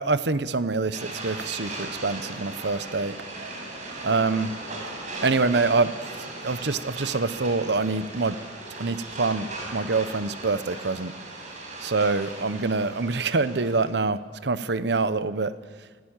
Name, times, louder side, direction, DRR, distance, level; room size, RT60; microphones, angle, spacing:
voice 1, 0.0-3.1 4.0-4.7 5.2-5.9 6.4-8.4 8.8-11.1 11.8-15.5, right 3 dB, 70° right, 14 dB, 0.9 m, -25 dB
sound 1, 0.9-14.0, right 2 dB, 45° right, 5.7 m, -38 dB
24.0 x 16.0 x 9.0 m, 1.5 s
head